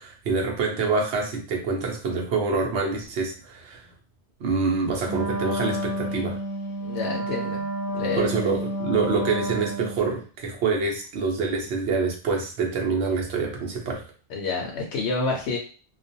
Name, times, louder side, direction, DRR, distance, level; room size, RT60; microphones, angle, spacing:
voice 1, 0.0-3.8 4.4-6.4 8.2-14.0, right 4 dB, 75° right, 0 dB, 0.9 m, -26 dB
Wind instrument woodwind instrument, 5.0-10.2, right 1 dB, 40° right, 0.6 m, -30 dB
voice 2, 6.8-7.6 7.9-8.4 14.3-15.6, left 3 dB, 80° left, -1 dB, 0.9 m, -28 dB
2.3 x 2.2 x 2.6 m, 0.37 s
omnidirectional pair, 1.1 m